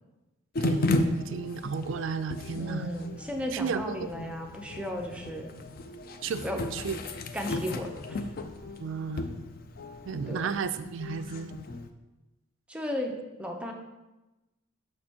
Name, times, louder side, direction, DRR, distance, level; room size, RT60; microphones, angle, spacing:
sound 1, 0.5-11.9, left 2 dB, 45° left, 0.4 m, -34 dB
voice 1, 0.6-2.9 3.5-4.1 6.2-6.4 6.7-7.0 8.8-9.3 10.0-11.5, right 5 dB, 60° right, 12 dB, 0.3 m, -33 dB
voice 2, 2.5-5.5 6.4-6.6 7.3-8.2 10.3-10.5 12.7-13.7, equal, 5° right, 2 dB, 0.6 m, -35 dB
6.5 x 6.1 x 2.9 m, 1.0 s
head